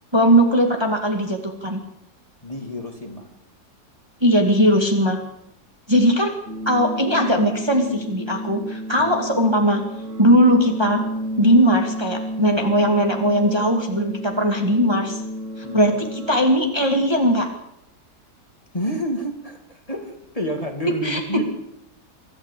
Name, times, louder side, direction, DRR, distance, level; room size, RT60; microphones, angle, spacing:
voice 1, 0.1-1.8 4.2-5.2 5.9-6.3 6.7-9.8 10.2-11.0 11.4-15.2 15.6-17.5 21.0-21.2, equal, 15° right, 3 dB, 2.4 m, -19 dB
voice 2, 2.4-3.3 9.0-9.1 15.6-15.8 18.7-21.4, equal, 20° left, 3 dB, 2.8 m, -29 dB
sound 1, 6.5-16.5, equal, 50° right, 2.1 m, -31 dB
25.0 x 13.5 x 8.5 m, 0.77 s
omnidirectional pair, 1.7 m